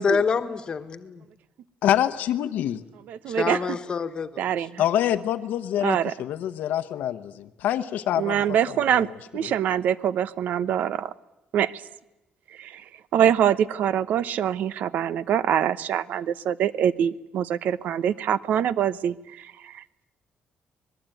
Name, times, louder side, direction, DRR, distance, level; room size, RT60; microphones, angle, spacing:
voice 1, 0.0-1.1 3.3-4.5, left 5 dB, 30° left, 1.4 m, -26 dB
voice 2, 1.8-2.8 4.8-8.4 9.0-9.1 9.4-9.5, left 11 dB, 75° left, 1.0 m, -26 dB
voice 3, 3.1-3.6 4.4-4.8 5.8-6.1 8.2-9.1 9.3-11.1 11.5-11.8 12.6-12.8 13.1-20.0, right 9 dB, 65° right, 0.9 m, -24 dB
25.5 x 20.5 x 9.1 m
cardioid pair, 165°, 3 cm